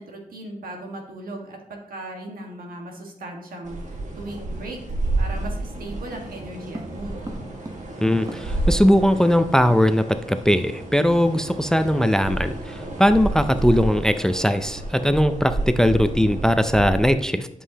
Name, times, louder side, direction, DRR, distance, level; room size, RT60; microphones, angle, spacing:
voice 1, 0.0-4.8 5.2-7.2, right 1 dB, 85° right, 2 dB, 1.5 m, -37 dB
sound 1, 3.6-17.1, right 2 dB, 55° right, 1.6 m, -30 dB
sound 2, 6.1-8.8 9.1-9.2 9.4-10.4 10.7-10.9 11.3-11.5, right 2 dB, 25° right, 0.9 m, -41 dB
voice 2, 8.0-17.5, equal, 5° left, 10 dB, 0.5 m, -19 dB
11.0 x 5.5 x 2.8 m, 0.78 s
cardioid pair, 70°, 14 cm